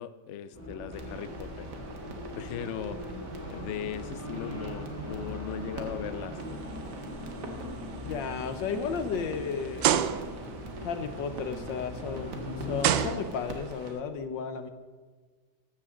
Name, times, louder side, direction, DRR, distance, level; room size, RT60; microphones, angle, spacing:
voice 1, 0.0-1.7 2.3-3.1 3.5-6.4, left 9 dB, 70° left, 12 dB, 0.7 m, -38 dB
Race car auto racing, 0.5-13.1, left 1 dB, 10° left, 2.4 m, -40 dB
sound 1, 0.9-13.9, right 3 dB, 65° right, 2.0 m, -46 dB
sound 2, 6.6-7.0 7.5-7.6 8.3-8.4 9.8-10.5 12.0-12.1 12.8-13.7, right 10 dB, 85° right, 1.3 m, -27 dB
voice 2, 8.0-9.9 10.8-14.7, left 5 dB, 85° left, 9 dB, 1.7 m, -34 dB
15.0 x 12.5 x 3.8 m, 1.4 s
omnidirectional pair, 1.9 m